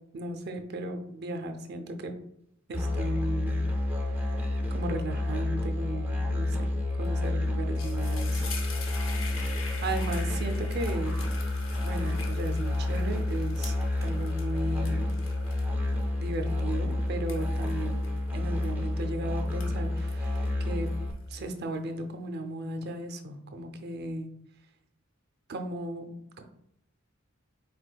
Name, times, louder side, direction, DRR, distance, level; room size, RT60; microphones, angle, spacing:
voice 1, 0.1-2.1 2.7-3.7 3.9-6.7 7.0-8.5 9.8-11.2 11.8-13.7 14.0-15.1 16.2-18.0 18.3-20.9 21.3-24.3 25.5-26.4, right 2 dB, 50° right, 6 dB, 0.5 m, -36 dB
Musical instrument, 2.7-21.1, left 2 dB, 10° right, 0.6 m, -29 dB
sound 1, 7.0-7.3 7.6-19.1 19.5-21.4, left 4 dB, 70° left, 0.8 m, -44 dB
5.1 x 4.1 x 2.2 m, 0.79 s
head